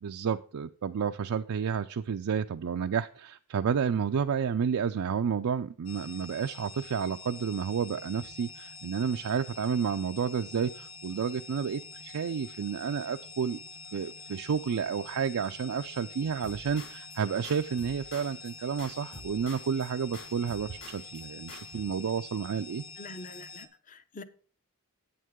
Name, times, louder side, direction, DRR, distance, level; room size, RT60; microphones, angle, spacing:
voice 1, 0.0-13.6 13.9-22.8, right 6 dB, 75° right, 0.4 m, -31 dB
sound 1, 5.9-23.7, left 4 dB, 75° left, 1.2 m, -46 dB
sound 2, 16.4-17.2 17.4-18.5 18.8-19.9 20.1-21.2 21.5-21.8, left 2 dB, 55° left, 4.8 m, -47 dB
voice 2, 23.0-24.2, left 2 dB, 35° left, 0.7 m, -45 dB
9.3 x 8.6 x 3.7 m
head